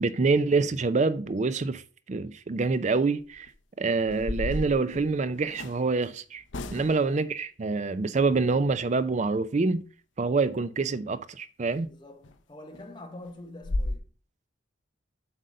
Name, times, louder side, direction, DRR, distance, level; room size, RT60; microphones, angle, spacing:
voice 1, 0.0-1.8 2.1-3.5 3.8-6.4 6.7-9.8 10.2-11.9, right 4 dB, 35° right, 0.4 m, -26 dB
sound 1, 3.2-3.5 4.0-5.8 6.5-7.2 11.7-11.8 12.2-12.4 12.7-12.8 13.2-13.3 13.6-14.0, left 1 dB, 70° left, 0.7 m, -33 dB
voice 2, 6.7-7.2 11.8-14.1, left 1 dB, 25° left, 1.4 m, -46 dB
7.6 x 4.0 x 6.4 m
head